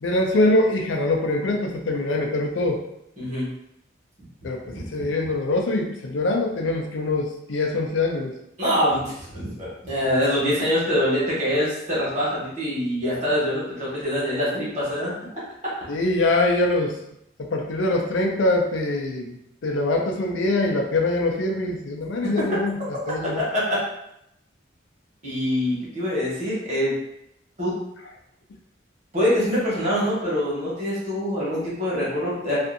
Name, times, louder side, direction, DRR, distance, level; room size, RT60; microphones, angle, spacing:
voice 1, 0.0-2.8 4.4-8.3 15.9-17.0 17.4-19.3 19.6-22.8 23.1-23.4, left 2 dB, 75° left, 2 dB, 0.4 m, -23 dB
voice 2, 3.2-3.5 4.6-4.9 8.6-15.1 15.6-15.7 23.7-23.8 25.2-26.9 27.6-27.8 29.1-32.6, equal, 35° right, -7 dB, 1.1 m, -24 dB
2.5 x 2.4 x 2.6 m, 0.79 s
head